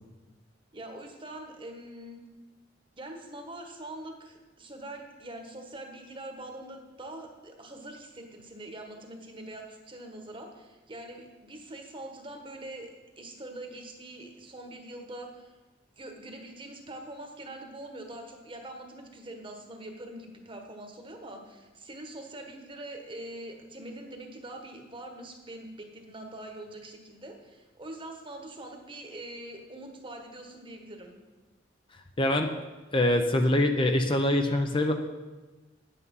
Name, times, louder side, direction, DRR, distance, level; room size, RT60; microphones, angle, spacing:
voice 1, 0.7-2.2 2.9-12.9 13.2-15.6 16.0-31.1, right 1 dB, 30° right, 3 dB, 1.4 m, -43 dB
voice 2, 32.2-32.5 32.9-34.9, left 1 dB, 30° left, 5 dB, 0.7 m, -24 dB
9.4 x 8.5 x 5.5 m, 1.2 s
head